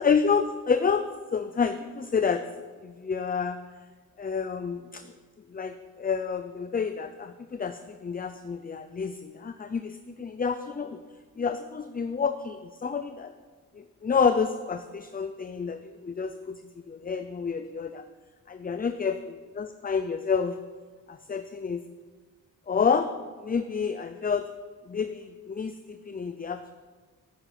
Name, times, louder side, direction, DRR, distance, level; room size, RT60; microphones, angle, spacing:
voice 1, 0.0-2.4 2.8-3.6 4.2-5.0 5.5-11.0 11.4-13.3 13.7-16.6 16.9-18.0 18.5-20.6 21.1-21.8 22.7-23.1 23.4-24.5 24.9-26.7, left 6 dB, 25° left, 9 dB, 0.5 m, -29 dB
10.5 x 9.1 x 5.9 m, 1.5 s
wide cardioid pair, 110°, 34 cm